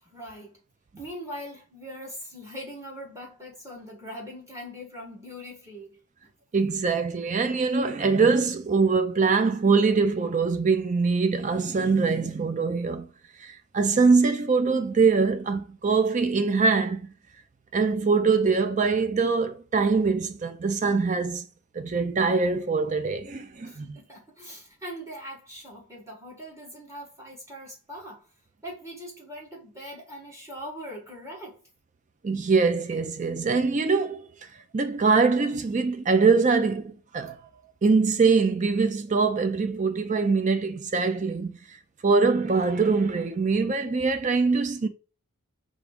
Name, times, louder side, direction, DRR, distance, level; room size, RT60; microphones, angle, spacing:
voice 1, 0.0-0.6 1.0-6.3 23.6-28.3 28.6-31.6, equal, 15° right, 1.0 m, -41 dB
voice 2, 6.5-13.1 13.4-17.0 17.7-21.5 21.7-24.0 32.2-34.3 34.7-37.4 37.8-41.5 42.0-44.9, right 4 dB, 35° right, 0.4 m, -23 dB
4.8 x 2.5 x 3.5 m
head